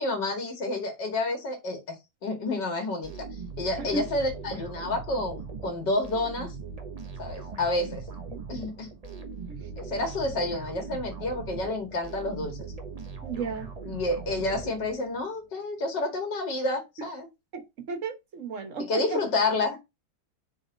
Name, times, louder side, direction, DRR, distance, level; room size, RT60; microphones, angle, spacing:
voice 1, 0.0-1.8 2.2-3.3 3.6-6.5 7.2-8.0 8.5-8.9 9.8-12.7 13.8-17.3 18.8-19.8, left 2 dB, 80° left, 2.7 m, -29 dB
sound 1, 3.0-15.2, right 4 dB, 30° right, 0.8 m, -40 dB
voice 2, 13.2-13.7 17.5-19.2, right 4 dB, 50° right, 1.6 m, -34 dB
6.4 x 3.5 x 5.1 m
omnidirectional pair, 1.9 m